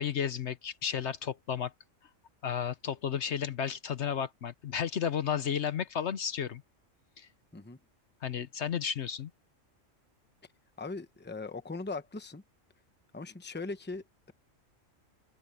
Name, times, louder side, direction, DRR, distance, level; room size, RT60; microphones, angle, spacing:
voice 1, 0.0-1.7 2.4-6.6 7.2-7.3 8.2-9.3, left 8 dB, 65° left, 1.1 m, -33 dB
voice 2, 10.8-12.4 13.1-14.3, left 3 dB, 10° left, 0.9 m, -40 dB
open air
omnidirectional pair, 1.3 m